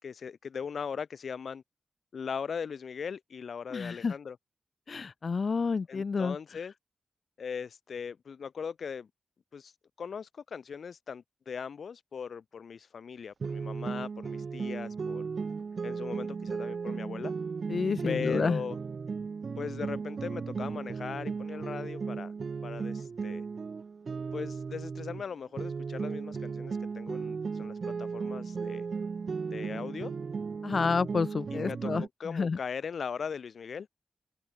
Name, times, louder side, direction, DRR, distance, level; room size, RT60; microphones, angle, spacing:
voice 1, 0.0-1.6 2.1-4.4 5.9-6.7 7.4-9.1 9.5-9.7 10.0-15.2 15.8-17.3 18.0-18.8 19.6-22.3 22.6-23.4 24.3-28.8 29.5-30.1 31.5-33.9, left 6 dB, 80° left, 4.7 m, -39 dB
voice 2, 3.7-4.1 4.9-6.3 17.7-18.6 30.6-32.6, left 5 dB, 60° left, 1.6 m, -29 dB
sound 1, 13.4-25.2 25.6-32.1, right 5 dB, 65° right, 0.7 m, -36 dB
cardioid pair, 75°, 0 cm